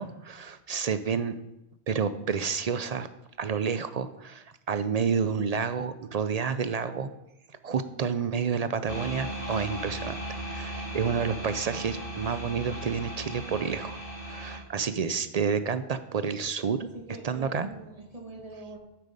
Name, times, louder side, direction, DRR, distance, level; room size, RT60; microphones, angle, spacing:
voice 1, 0.0-1.4 1.9-3.1 3.4-7.1 7.6-10.1 10.4-14.0 14.3-16.9 17.2-17.7, right 6 dB, 50° right, 12 dB, 0.5 m, -29 dB
sound 1, 8.9-14.6, right 1 dB, 60° left, 2.0 m, -37 dB
voice 2, 16.9-18.8, right 2 dB, 35° right, 0 dB, 2.0 m, -44 dB
9.0 x 7.6 x 5.3 m, 0.90 s
omnidirectional pair, 1.1 m